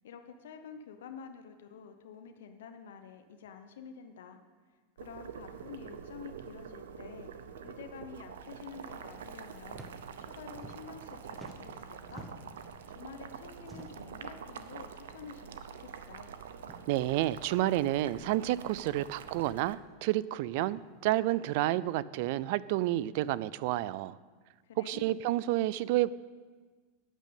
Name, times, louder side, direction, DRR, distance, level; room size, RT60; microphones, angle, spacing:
voice 1, 0.0-4.4 5.0-7.3 7.6-9.9 10.2-12.3 12.9-16.3 24.6-25.2, left 6 dB, 80° left, 7 dB, 0.8 m, -49 dB
Boiling, 5.0-19.7, right 7 dB, 90° right, 0.7 m, -46 dB
sound 1, 9.6-9.9 10.2-11.1 11.3-12.6 13.6-14.1 15.1-15.2 15.6-15.7 16.5-16.8 18.0-18.1 19.2-19.5 20.6-20.9, right 2 dB, 15° right, 1.1 m, -51 dB
voice 2, 16.9-24.2 24.8-26.1, right 15 dB, 60° right, 19 dB, 0.3 m, -30 dB
9.0 x 6.5 x 8.4 m, 1.4 s
supercardioid pair, 135°, 0 cm